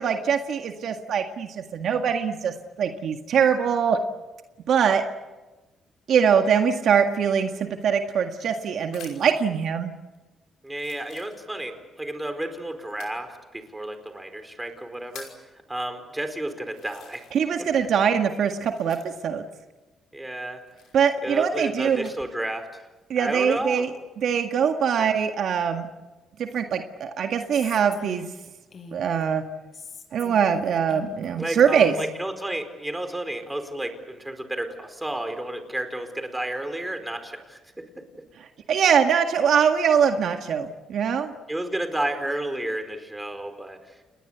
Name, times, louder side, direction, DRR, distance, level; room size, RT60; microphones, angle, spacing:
voice 1, 0.0-4.0 4.7-5.0 6.1-9.9 17.3-19.4 20.9-22.1 23.1-23.9 24.2-25.9 26.4-28.3 28.9-29.4 30.1-32.0 38.7-41.3, right 7 dB, 65° right, 5 dB, 1.8 m, -22 dB
sound 1, 7.8-9.5 10.1-10.2 10.7-11.8 12.9-13.2 14.1-14.2 14.7-15.5 16.2-16.3 16.7-17.6 17.8-19.4 20.6-22.2 22.8-23.3, left 8 dB, 85° left, 5.7 m, -49 dB
voice 2, 10.6-15.3 15.7-17.3 20.1-20.6 21.2-22.8 23.2-23.9 25.0-25.1 31.4-38.1 41.5-44.0, right 1 dB, 10° right, 7 dB, 4.6 m, -32 dB
Female speech woman speaking, 27.5-29.2 29.7-32.2, left 5 dB, 45° left, 5.6 m, -43 dB
29.5 x 20.5 x 8.2 m, 1.1 s
cardioid pair, 90°, 0 cm